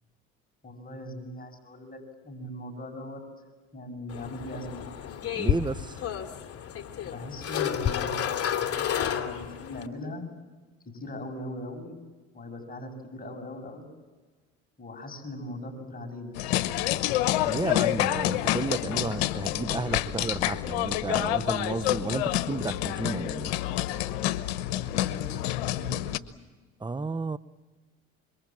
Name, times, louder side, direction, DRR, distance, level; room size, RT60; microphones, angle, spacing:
voice 1, 0.6-3.2 3.7-4.9 7.0-10.2 10.9-12.0 12.3-13.9 14.8-16.4 24.7-26.3, left 1 dB, 25° left, 6.8 m, -40 dB
sound 1, 4.1-9.9, left 9 dB, 45° left, 2.6 m, -31 dB
voice 2, 5.3-6.0 17.5-23.5 26.8-27.4, right 3 dB, 15° right, 0.8 m, -32 dB
sound 2, 16.4-26.2, left 14 dB, 85° left, 1.0 m, -28 dB
sound 3, 18.2-24.3, left 9 dB, 65° left, 2.8 m, -40 dB
26.5 x 23.5 x 7.3 m
supercardioid pair, 75°, 32 cm